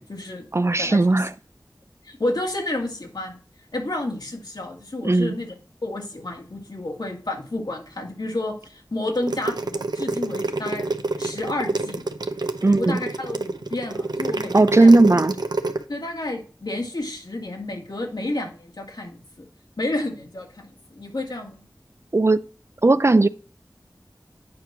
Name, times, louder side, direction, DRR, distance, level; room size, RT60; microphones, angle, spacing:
voice 1, 0.0-0.5 0.8-1.0 2.0-3.4 3.7-5.5 5.8-10.9 11.2-12.0 12.8-14.9 15.9-19.4 19.8-21.6, left 2 dB, 75° left, 1.8 m, -30 dB
voice 2, 0.5-1.3 5.0-5.3 12.6-13.0 14.5-15.4 22.1-22.4 22.8-23.3, right 2 dB, 40° right, 0.4 m, -16 dB
sound 1, 9.2-15.8, right 2 dB, 80° right, 0.7 m, -27 dB
8.6 x 3.0 x 5.9 m
wide cardioid pair, 50°, 7 cm